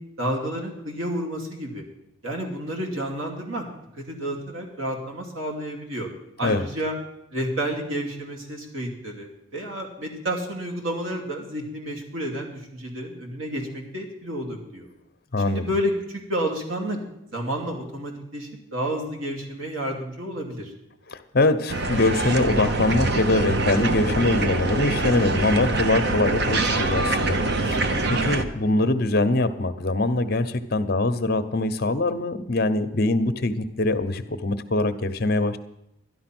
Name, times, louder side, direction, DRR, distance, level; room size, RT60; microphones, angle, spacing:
voice 1, 0.2-1.8 2.2-3.7 4.0-6.1 6.4-6.9 7.3-14.9 15.5-17.0 17.3-20.7, right 1 dB, 85° right, 1 dB, 2.7 m, -30 dB
voice 2, 15.3-15.7 21.1-27.4 27.7-35.6, left 2 dB, 50° left, 10 dB, 0.8 m, -23 dB
sound 1, 21.7-28.4, right 2 dB, 55° right, 0.9 m, -24 dB
12.5 x 11.0 x 6.1 m, 0.84 s
head